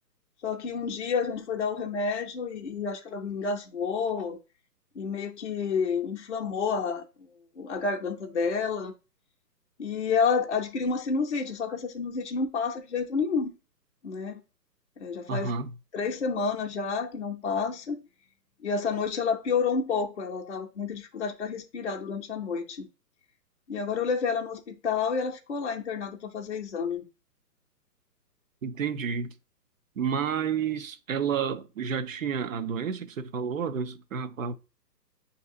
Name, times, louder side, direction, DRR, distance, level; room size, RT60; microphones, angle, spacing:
voice 1, 0.4-4.4 5.0-7.3 7.6-8.9 9.8-13.5 14.0-14.4 15.0-15.5 15.9-18.1 18.6-22.9 23.7-27.1, left 5 dB, 45° left, 0.5 m, -29 dB
voice 2, 15.3-15.7 28.6-29.3 30.0-34.5, right 6 dB, 55° right, 0.5 m, -30 dB
6.8 x 2.7 x 2.5 m
hypercardioid pair, 170°, 50 cm